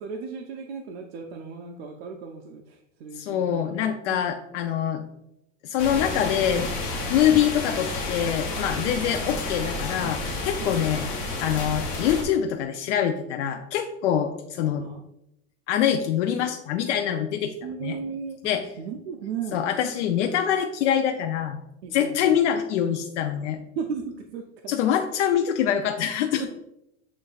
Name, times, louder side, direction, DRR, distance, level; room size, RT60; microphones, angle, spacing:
voice 1, 0.0-3.8 4.1-4.3 7.1-7.4 8.8-9.1 10.6-10.8 14.8-15.0 17.6-18.4 18.8-19.6 21.8-22.4 23.8-24.7 26.4-26.5, right 6 dB, 60° right, 2 dB, 0.5 m, -36 dB
voice 2, 3.2-5.0 5.6-6.7 7.1-11.1 11.4-14.8 15.7-17.5 17.8-18.0 18.4-18.7 19.5-21.6 21.9-23.6 24.7-26.5, left 9 dB, 75° left, 5 dB, 0.5 m, -24 dB
sound 1, 5.8-12.2, left 2 dB, 20° left, 0.4 m, -31 dB
7.1 x 3.2 x 2.3 m, 0.81 s
supercardioid pair, 180°, 36 cm